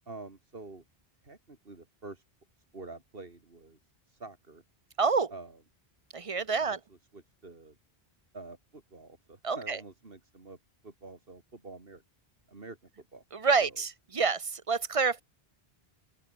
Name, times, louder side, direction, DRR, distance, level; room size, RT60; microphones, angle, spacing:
voice 1, 0.1-0.8 1.2-2.2 2.7-3.8 4.1-4.6 5.3-5.6 6.5-7.8 8.3-10.6 10.8-12.0 12.5-13.2 13.6-13.8, right 3 dB, 65° right, 3.0 m, -47 dB
voice 2, 5.0-5.3 6.1-6.8 9.4-9.8 13.3-13.9 14.1-15.2, right 5 dB, 35° right, 0.8 m, -27 dB
open air
omnidirectional pair, 1.0 m